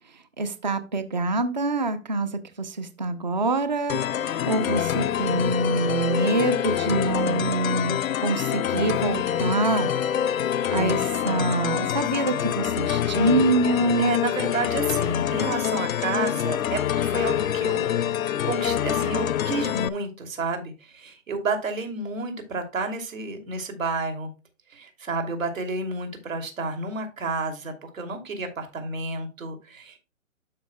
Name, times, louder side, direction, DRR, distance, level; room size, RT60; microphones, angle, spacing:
voice 1, 0.4-9.9 10.7-14.2, right 2 dB, 35° right, 10 dB, 0.6 m, -25 dB
sound 1, 3.9-19.9, left 10 dB, 80° left, 0.6 m, -26 dB
voice 2, 14.0-18.0 18.4-24.3 24.7-30.0, right 3 dB, 75° right, 6 dB, 2.8 m, -30 dB
12.5 x 5.6 x 2.2 m, 0.30 s
hypercardioid pair, 180°, 40 cm